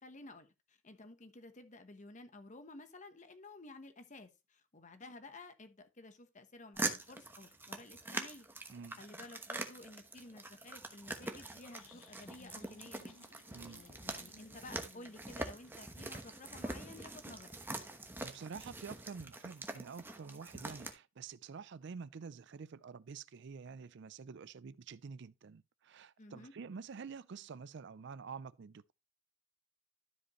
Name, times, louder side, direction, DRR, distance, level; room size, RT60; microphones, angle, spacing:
voice 1, 0.0-8.5 9.0-13.2 13.7-17.5 26.2-26.5, left 2 dB, 40° left, 1.1 m, -53 dB
sound 1, 6.8-20.9, right 2 dB, 10° right, 1.0 m, -44 dB
sound 2, 11.1-16.1, left 3 dB, 85° left, 1.1 m, -61 dB
voice 2, 13.5-13.8 18.2-28.9, right 5 dB, 60° right, 0.4 m, -48 dB
12.5 x 5.2 x 3.1 m
head